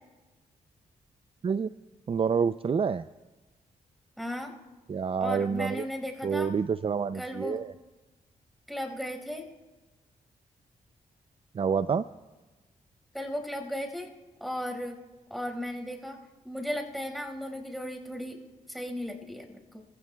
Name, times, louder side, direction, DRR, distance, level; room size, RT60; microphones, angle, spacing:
voice 1, 2.1-3.0 4.9-5.8 6.2-7.7 11.5-12.0, right 6 dB, 35° right, 13 dB, 0.4 m, -28 dB
voice 2, 4.2-4.5 5.2-6.5 7.1-7.6 8.7-9.5 13.1-14.1 14.4-15.0 15.3-16.2 16.4-18.4 18.7-19.8, equal, ahead, 2 dB, 5.0 m, -35 dB
27.0 x 16.0 x 2.3 m, 1.2 s
cardioid pair, 55°, 16 cm